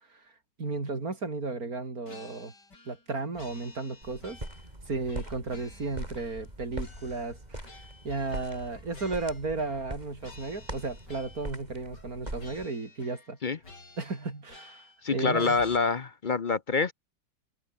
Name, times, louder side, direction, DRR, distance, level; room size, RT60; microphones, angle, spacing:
voice 1, 0.6-2.5 2.9-4.4 4.9-7.7 8.0-13.4 14.0-14.9 15.1-15.6, right 3 dB, 55° right, 4.2 m, -34 dB
sound 1, 2.1-3.1 3.3-4.7 5.1-6.5 6.8-9.9 10.2-11.6 11.9-12.1 12.4-13.4 13.6-15.0 15.3-15.8, left 3 dB, 90° left, 5.6 m, -51 dB
sound 2, 4.0-12.7, right 1 dB, 25° right, 7.2 m, -42 dB
voice 2, 15.0-16.9, left 4 dB, 40° left, 0.7 m, -26 dB
omnidirectional pair, 1.8 m